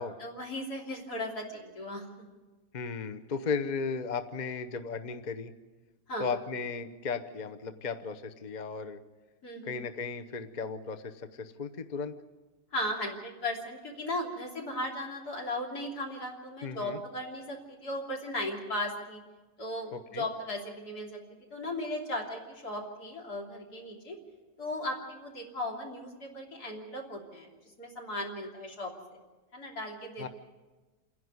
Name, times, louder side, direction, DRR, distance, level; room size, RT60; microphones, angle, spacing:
voice 1, 0.0-2.1 2.3-2.4 6.1-6.4 9.4-9.8 12.7-19.2 19.6-21.2 21.5-24.2 24.6-27.5 27.8-29.2 29.5-30.3, left 1 dB, 75° left, -1 dB, 3.6 m, -37 dB
voice 2, 2.7-5.5 6.2-9.0 9.6-12.1 16.6-17.0 19.9-20.2 30.2-30.3, left 5 dB, 35° left, 9 dB, 0.8 m, -35 dB
28.0 x 11.0 x 9.5 m, 1.2 s
omnidirectional pair, 1.7 m